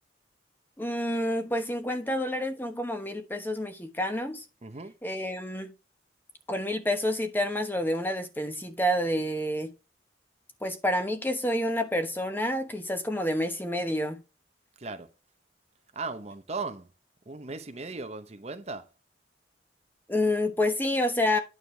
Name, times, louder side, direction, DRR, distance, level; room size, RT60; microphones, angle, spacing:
voice 1, 0.8-4.4 5.0-5.7 6.5-9.7 10.6-14.2 20.1-21.4, left 1 dB, 10° left, 1.0 m, -28 dB
voice 2, 4.6-4.9 14.8-15.1 15.9-16.9 17.3-18.9, right 3 dB, 35° right, 0.7 m, -37 dB
9.3 x 6.5 x 3.3 m
head